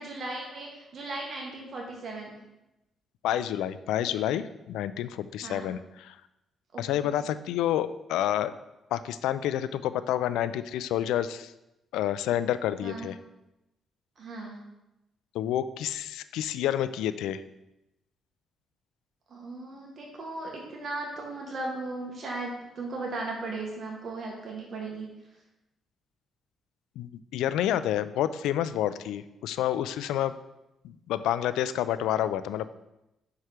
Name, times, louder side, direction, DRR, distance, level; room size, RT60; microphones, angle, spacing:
voice 1, 0.0-2.3 5.4-5.7 6.7-7.0 12.8-13.1 14.2-14.6 19.3-25.1, right 2 dB, 50° right, 0 dB, 1.5 m, -37 dB
voice 2, 3.2-6.2 6.8-8.5 8.9-11.5 11.9-13.2 15.3-17.4 27.0-30.3 30.8-32.7, left 11 dB, 90° left, 14 dB, 0.4 m, -29 dB
5.7 x 4.7 x 6.5 m, 0.92 s
cardioid pair, 90°, 0 cm